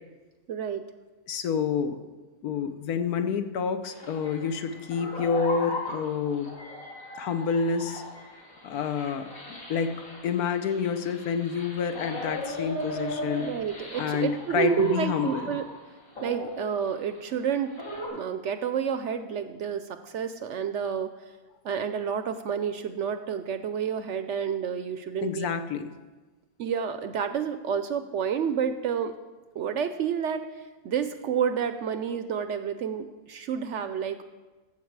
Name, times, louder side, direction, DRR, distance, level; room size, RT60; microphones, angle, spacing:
voice 1, 0.5-0.8 13.4-15.6 16.2-17.7 18.1-21.1 21.6-25.5 26.6-29.1 29.6-30.5 30.8-34.2, right 7 dB, 65° right, 10 dB, 0.8 m, -29 dB
voice 2, 1.3-2.0 2.4-6.5 7.2-8.0 8.6-9.3 9.7-13.5 14.0-15.6 25.2-25.8, left 6 dB, 85° left, 9 dB, 1.3 m, -28 dB
sound 1, 3.8-15.8 16.1-18.1, left 1 dB, 65° left, 3.6 m, -38 dB
14.5 x 7.4 x 4.7 m, 1.2 s
omnidirectional pair, 1.6 m